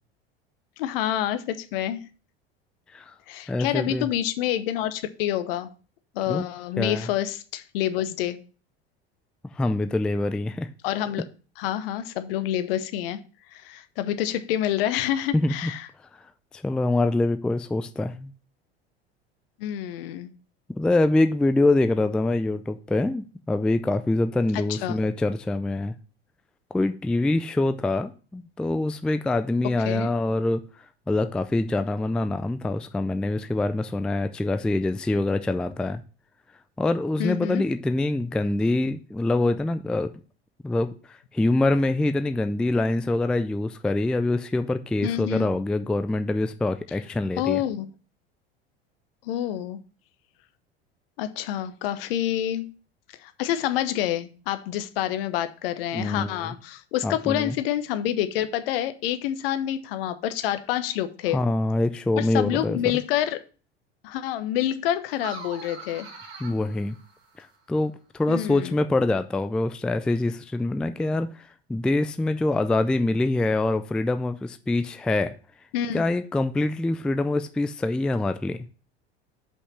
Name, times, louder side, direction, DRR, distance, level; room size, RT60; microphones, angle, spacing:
voice 1, 0.8-2.1 3.3-5.7 6.1-8.4 10.8-11.2 11.6-13.2 13.5-15.9 19.6-20.3 24.7-25.0 29.9-30.1 37.2-37.6 45.0-45.5 47.4-47.9 49.2-49.8 51.2-52.7 53.2-61.4 62.2-63.4 64.0-66.1 68.3-68.7 75.7-76.0, left 12 dB, 60° left, 0.9 m, -27 dB
voice 2, 3.5-4.1 6.3-6.4 6.8-7.1 9.6-10.7 15.3-15.7 16.5-18.3 20.8-25.9 26.7-30.6 31.1-36.0 36.8-40.1 40.6-47.6 55.9-56.5 57.0-57.6 61.3-62.8 66.4-66.9 67.4-71.3 71.7-75.3 75.9-78.6, left 2 dB, 5° left, 0.3 m, -25 dB
sound 1, 65.1-67.6, right 3 dB, 70° right, 2.0 m, -42 dB
5.5 x 5.5 x 5.8 m
figure-of-eight pair, 80°, 32 cm